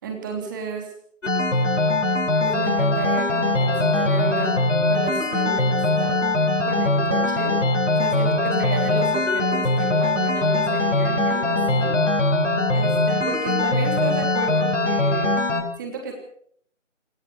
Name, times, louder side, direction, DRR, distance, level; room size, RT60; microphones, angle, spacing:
voice 1, 0.0-0.9 2.4-4.5 4.9-6.2 6.6-7.6 8.0-11.9 12.7-15.3 15.8-16.1, right 4 dB, 15° right, 3 dB, 3.2 m, -32 dB
sound 1, 1.2-15.6, left 2 dB, 70° left, 6.6 m, -21 dB
26.5 x 14.5 x 6.9 m, 0.65 s
figure-of-eight pair, 160°, 38 cm